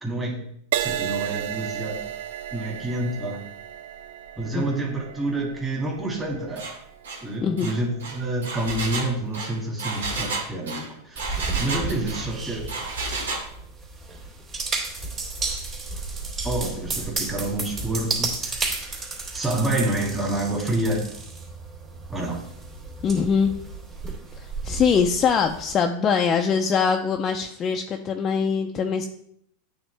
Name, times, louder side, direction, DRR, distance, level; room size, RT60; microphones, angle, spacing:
voice 1, 0.0-0.4 0.8-2.0 2.5-3.4 4.4-6.6 7.2-12.6 16.4-18.7 19.3-21.0 22.1-22.4, right 1 dB, 10° right, -4 dB, 2.0 m, -28 dB
Crash cymbal, 0.7-8.4 9.0-9.3, right 11 dB, 70° right, 0.3 m, -34 dB
Engine, 6.6-6.8 7.0-7.2 7.6-12.3 12.7-13.5, right 3 dB, 85° right, 1.3 m, -31 dB
sound 1, 11.2-25.7, right 3 dB, 30° right, 2.6 m, -33 dB
voice 2, 23.0-23.5 24.4-29.1, left 6 dB, 30° left, 4 dB, 0.5 m, -23 dB
8.9 x 3.6 x 3.3 m, 0.69 s
hypercardioid pair, 110°, 0 cm